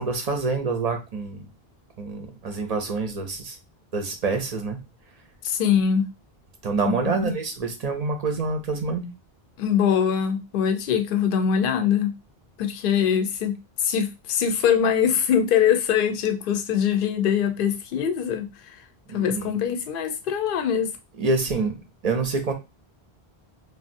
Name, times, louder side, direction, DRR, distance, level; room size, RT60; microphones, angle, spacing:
voice 1, 0.0-1.5 2.0-3.6 3.9-4.8 6.6-9.1 19.1-19.6 21.2-21.8 22.0-22.5, right 3 dB, 50° right, 0.5 m, -26 dB
voice 2, 5.4-6.1 6.9-7.3 9.6-12.1 12.6-18.5 19.1-20.9, left 8 dB, 65° left, 0.7 m, -23 dB
3.3 x 2.4 x 2.5 m
omnidirectional pair, 1.1 m